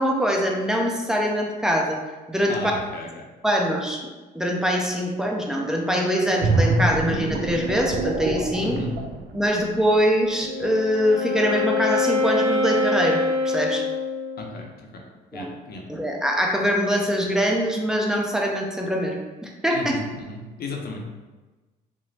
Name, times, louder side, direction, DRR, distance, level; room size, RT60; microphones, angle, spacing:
voice 1, 0.0-2.0 2.3-2.6 3.4-4.1 4.3-8.8 9.3-13.8 15.3-15.5 15.9-20.0, equal, 5° right, 0 dB, 0.5 m, -23 dB
voice 2, 2.5-3.2 8.6-8.9 14.4-15.0 15.3-15.8 19.7-21.0, left 3 dB, 50° left, 1 dB, 0.6 m, -34 dB
sound 1, 6.4-10.0 10.4-10.6, right 2 dB, 60° right, 0.4 m, -25 dB
Wind instrument woodwind instrument, 10.2-14.6, left 3 dB, 15° left, 1.1 m, -25 dB
2.9 x 2.0 x 2.7 m, 1.2 s
supercardioid pair, 60°, 20 cm